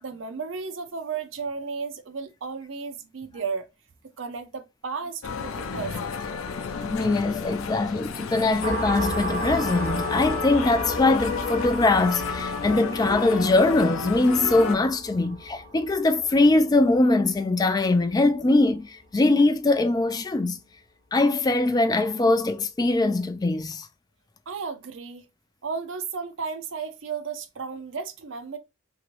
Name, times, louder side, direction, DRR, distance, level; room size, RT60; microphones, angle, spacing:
voice 1, 0.0-3.7 4.2-6.1 24.5-25.3 25.6-28.6, right 5 dB, 70° right, 0.6 m, -34 dB
sound 1, 5.2-14.8, left 5 dB, 90° left, 0.4 m, -32 dB
voice 2, 6.8-20.6 21.1-23.9, left 2 dB, 20° left, 0.3 m, -22 dB
sound 2, 8.6-17.9, equal, 50° left, 1.2 m, -34 dB
2.9 x 2.5 x 3.0 m
head